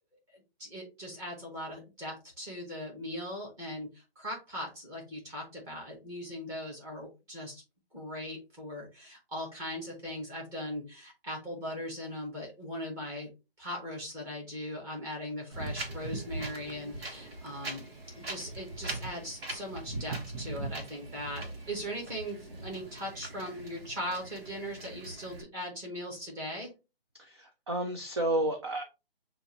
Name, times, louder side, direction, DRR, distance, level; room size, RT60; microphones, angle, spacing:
voice 1, 0.3-7.6 7.9-13.3 13.6-17.8 18.2-26.7, equal, 10° right, -3 dB, 1.0 m, -39 dB
Wind, 15.5-25.4, right 2 dB, 75° right, 1.4 m, -41 dB
voice 2, 27.2-28.8, right 1 dB, 30° right, 4 dB, 0.4 m, -31 dB
6.7 x 2.5 x 2.9 m, 0.27 s
hypercardioid pair, 160°, 30 cm